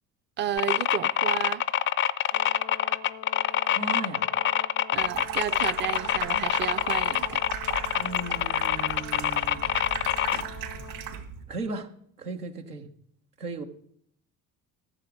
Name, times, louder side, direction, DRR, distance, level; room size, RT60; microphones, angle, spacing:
voice 1, 0.4-1.7 4.9-7.4, right 10 dB, 25° right, 0.6 m, -32 dB
sound 1, 0.6-10.4, left 11 dB, 30° left, 0.5 m, -25 dB
Brass instrument, 2.3-11.3, left 11 dB, 80° left, 0.6 m, -45 dB
voice 2, 3.7-4.3 8.0-9.6 11.5-12.9 13.4-13.6, right 3 dB, 85° right, 1.2 m, -36 dB
Water tap faucet / Sink (filling or washing), 5.0-11.4, right 9 dB, 70° right, 3.1 m, -38 dB
14.5 x 7.3 x 5.0 m
figure-of-eight pair, 55°, 45 cm